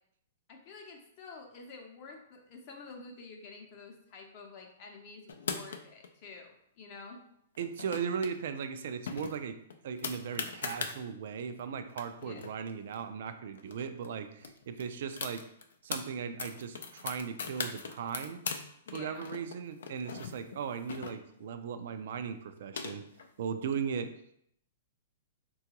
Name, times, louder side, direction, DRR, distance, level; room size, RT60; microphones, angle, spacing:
voice 1, 0.5-7.2 12.2-12.4 18.9-19.2, left 4 dB, 40° left, 2 dB, 0.6 m, -49 dB
sound 1, 5.3-6.1 7.6-8.3 8.6-8.7 9.1-11.0 11.6-11.7 11.9-13.7 14.0-14.1 14.4-16.0 16.4-18.6 18.9-21.5 22.3-23.3, left 5 dB, 80° left, 0.4 m, -39 dB
voice 2, 7.6-9.5 9.8-15.4 15.8-18.4 18.9-23.0 23.4-24.1, right 7 dB, 65° right, 9 dB, 0.3 m, -37 dB
3.7 x 2.3 x 2.9 m, 0.72 s
hypercardioid pair, 145°, 0 cm